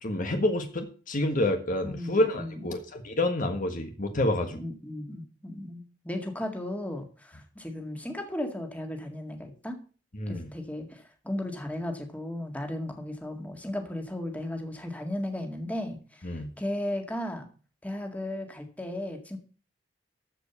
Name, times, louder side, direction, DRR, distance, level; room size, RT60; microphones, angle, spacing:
voice 1, 0.0-4.6 10.1-10.5 16.2-16.5, left 1 dB, 50° left, 5 dB, 1.5 m, -28 dB
voice 2, 1.8-2.8 4.5-9.8 10.3-17.5 17.8-19.4, left 1 dB, 10° left, 3 dB, 1.9 m, -35 dB
14.0 x 5.2 x 7.0 m, 0.38 s
head